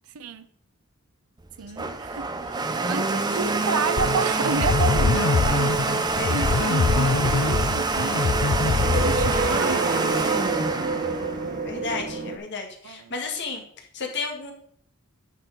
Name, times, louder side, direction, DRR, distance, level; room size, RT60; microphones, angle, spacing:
voice 1, 0.1-0.5 1.6-8.3 8.9-11.1 12.8-13.1, right 5 dB, 85° right, 0.6 m, -32 dB
Domestic sounds home sounds, 1.4-12.1, right 3 dB, 20° right, 0.6 m, -26 dB
sound 1, 4.0-9.8, left 4 dB, 75° left, 0.5 m, -24 dB
sound 2, 4.6-12.4, right 3 dB, 40° right, 1.0 m, -30 dB
voice 2, 6.1-6.6 11.6-13.6 13.9-14.5, left 4 dB, 55° left, 1.7 m, -32 dB
9.8 x 4.6 x 5.1 m
head